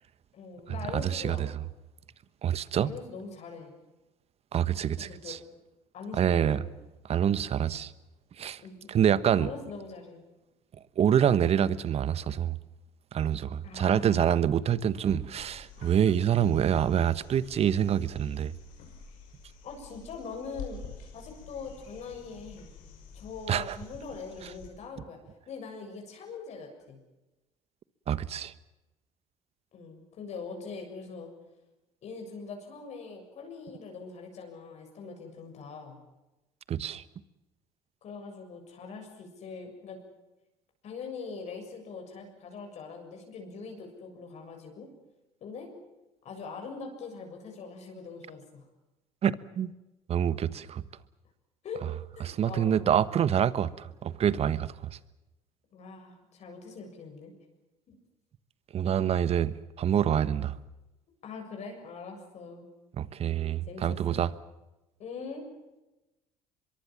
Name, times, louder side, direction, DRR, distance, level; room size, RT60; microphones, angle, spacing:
voice 1, 0.3-1.5 2.8-3.7 5.0-5.4 5.9-6.6 8.6-8.9 9.4-10.2 13.6-14.4 19.6-20.8 21.1-22.7 23.1-25.2 25.5-27.0 29.7-31.3 32.0-36.0 38.0-40.0 40.8-44.9 45.4-45.7 46.2-48.7 51.6-51.9 52.1-52.8 55.7-57.3 57.9-58.0 61.2-62.7 63.7-64.2 65.0-65.5, left 4 dB, 55° left, 7.1 m, -42 dB
voice 2, 0.9-1.5 2.4-2.9 4.5-5.4 6.1-6.6 7.1-7.9 8.4-8.6 8.9-9.5 11.0-12.6 13.1-18.5 23.5-23.8 28.1-28.5 36.7-37.0 49.2-49.7 50.1-50.8 52.2-54.7 58.7-60.5 63.0-64.3, right 9 dB, 50° right, 1.3 m, -26 dB
sound 1, 15.4-24.7 26.8-26.9, left 5 dB, 70° left, 6.1 m, -48 dB
24.0 x 23.0 x 7.4 m
supercardioid pair, 80°, 14 cm